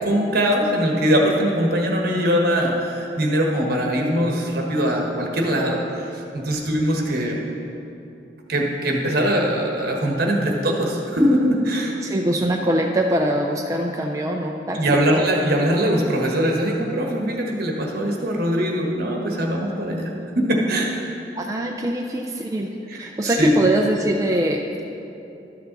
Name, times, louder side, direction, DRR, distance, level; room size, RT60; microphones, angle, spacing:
voice 1, 0.1-7.4 8.5-12.0 14.7-20.1 20.4-21.1 22.9-23.5, equal, 60° right, 0 dB, 1.3 m, -21 dB
voice 2, 12.0-15.3 21.4-22.7 23.0-24.6, right 1 dB, 20° right, 1 dB, 0.4 m, -23 dB
12.5 x 6.7 x 4.0 m, 2.8 s
head